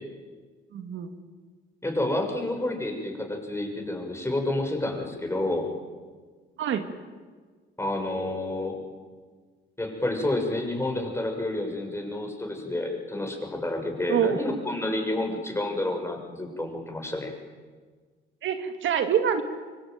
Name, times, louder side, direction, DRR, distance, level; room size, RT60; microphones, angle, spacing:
voice 1, 0.7-1.1 6.6-6.9 14.1-14.5 18.4-19.4, right 8 dB, 75° right, 7 dB, 2.4 m, -26 dB
voice 2, 1.8-5.7 7.8-8.8 9.8-17.3, left 1 dB, 15° left, 3 dB, 6.8 m, -29 dB
25.0 x 22.5 x 9.5 m, 1.5 s
cardioid pair, 90°, 20 cm